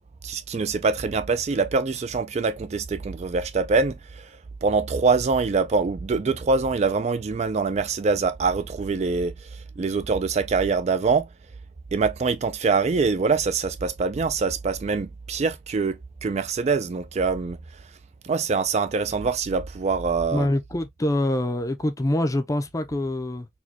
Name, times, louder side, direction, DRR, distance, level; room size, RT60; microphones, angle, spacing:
voice 1, 0.2-4.3 4.6-11.3 11.9-17.6 18.2-20.5, right 4 dB, 40° right, 0.4 m, -24 dB
voice 2, 20.3-23.5, left 1 dB, 20° left, 0.5 m, -25 dB
4.3 x 2.2 x 2.8 m
head